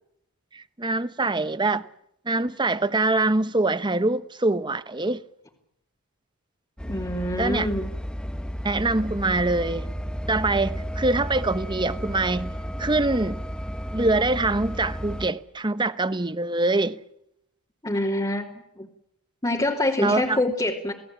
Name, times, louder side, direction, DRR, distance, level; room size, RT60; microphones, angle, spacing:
voice 1, 0.5-1.8 2.3-5.2 7.4-7.7 8.6-9.9 10.3-12.5 12.8-13.4 13.9-17.0 20.0-20.4, right 2 dB, 20° right, 1.0 m, -24 dB
voice 2, 6.8-7.9 17.8-18.5 18.8-18.9 19.4-20.9, left 1 dB, 20° left, 3.0 m, -25 dB
sound 1, 6.8-15.3, equal, 5° left, 1.4 m, -33 dB
28.5 x 18.5 x 8.7 m
head